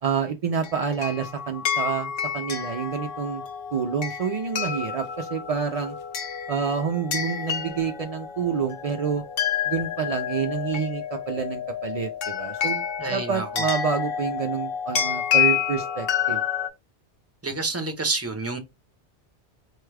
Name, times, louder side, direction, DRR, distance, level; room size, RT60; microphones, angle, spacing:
voice 1, 0.0-3.4 3.7-6.0 6.5-9.2 9.7-12.8 13.1-16.4, right 6 dB, 60° right, 0.3 m, -28 dB
sound 1, 0.6-16.7, left 9 dB, 60° left, 0.8 m, -29 dB
voice 2, 13.0-13.6 17.4-18.6, right 3 dB, 15° right, 0.6 m, -29 dB
4.6 x 2.3 x 3.2 m
omnidirectional pair, 1.2 m